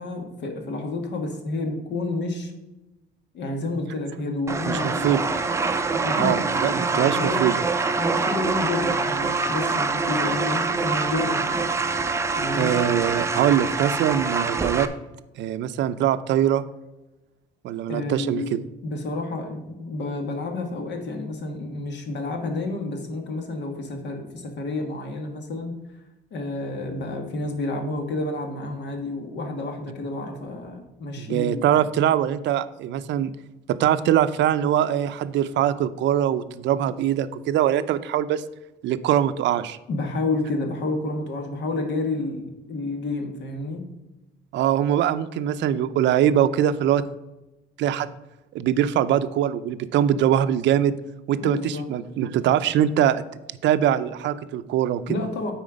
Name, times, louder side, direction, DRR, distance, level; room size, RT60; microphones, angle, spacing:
voice 1, 0.0-2.5 3.3-5.3 5.9-7.5 8.0-11.7 12.4-12.7 17.9-18.6 18.8-25.7 26.3-31.6 39.9-43.8 51.4-51.9 55.1-55.5, left 2 dB, 65° left, 5 dB, 1.5 m, -30 dB
sound 1, 4.5-14.9, right 4 dB, 15° right, 0.5 m, -25 dB
voice 2, 4.7-5.2 6.2-7.5 12.5-14.9 15.4-16.6 17.6-18.6 31.2-33.3 33.7-38.4 38.8-39.8 44.5-47.0 47.8-48.1 48.5-51.0 51.3-53.2 53.6-55.2, right 10 dB, 70° right, 12 dB, 0.5 m, -22 dB
9.1 x 4.4 x 5.0 m, 1.0 s
cardioid pair, 150°, 20 cm